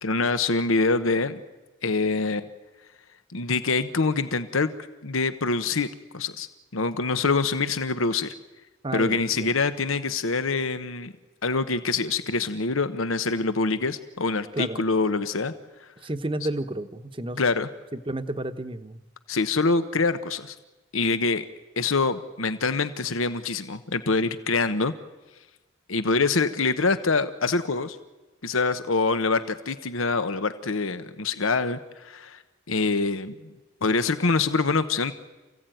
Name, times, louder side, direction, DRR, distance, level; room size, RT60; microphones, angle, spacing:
voice 1, 0.0-1.4 1.8-2.4 3.3-4.7 5.0-5.9 6.1-6.5 6.7-8.3 8.9-11.1 11.4-15.5 17.4-17.7 19.3-20.5 20.9-21.4 21.8-24.9 25.9-28.0 28.4-32.4 32.7-33.5 33.8-35.1, left 3 dB, 90° left, 11 dB, 1.1 m, -25 dB
voice 2, 8.8-9.5 14.5-14.8 16.0-17.4 17.9-19.0, right 1 dB, 25° right, 10 dB, 0.9 m, -31 dB
28.5 x 16.0 x 9.2 m, 1.2 s
head